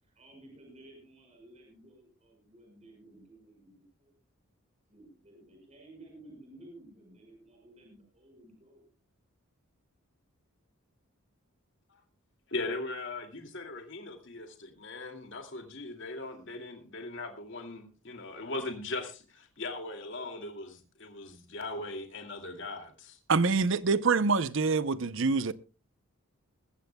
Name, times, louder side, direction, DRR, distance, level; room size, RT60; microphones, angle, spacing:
voice 1, 0.0-4.1 4.9-8.8, right 1 dB, 30° right, 5.5 m, -54 dB
voice 2, 12.5-23.2, left 2 dB, 55° left, 2.4 m, -39 dB
voice 3, 23.3-25.5, right 4 dB, 60° right, 0.7 m, -25 dB
21.0 x 15.0 x 2.3 m
head